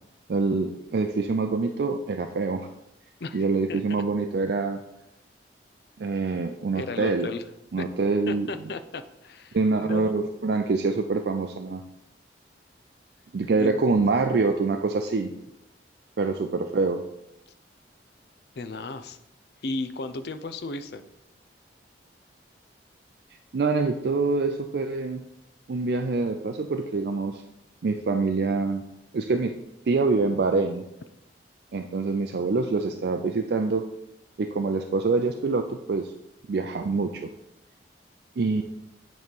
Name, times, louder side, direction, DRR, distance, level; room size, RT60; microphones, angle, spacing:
voice 1, 0.3-2.7 3.3-4.8 6.0-7.3 7.7-8.5 9.5-11.8 13.3-15.3 16.2-17.0 23.5-25.2 25.7-27.4 27.8-28.8 29.1-29.6 29.9-30.9 31.7-33.9 34.4-36.1 36.5-37.3 38.4-38.6, right 3 dB, 55° right, 5 dB, 0.4 m, -25 dB
voice 2, 3.2-4.0 6.7-7.4 7.8-7.9 8.3-10.2 13.6-14.0 18.6-19.2 19.6-21.0, left 3 dB, 60° left, 11 dB, 0.5 m, -35 dB
8.8 x 3.2 x 5.3 m, 0.85 s
head